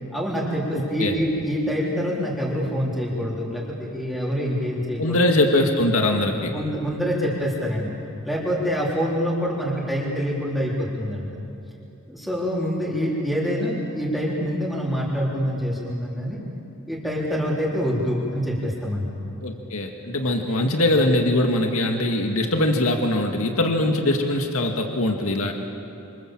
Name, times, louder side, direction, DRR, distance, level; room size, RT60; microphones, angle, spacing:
voice 1, 0.1-5.2 6.5-7.9 8.2-11.3 12.1-16.4 16.9-19.2, equal, ahead, -6 dB, 3.9 m, -26 dB
voice 2, 0.7-1.2 5.0-6.5 19.4-25.5, left 1 dB, 80° left, 3 dB, 2.1 m, -22 dB
28.0 x 27.0 x 7.5 m, 2.8 s
head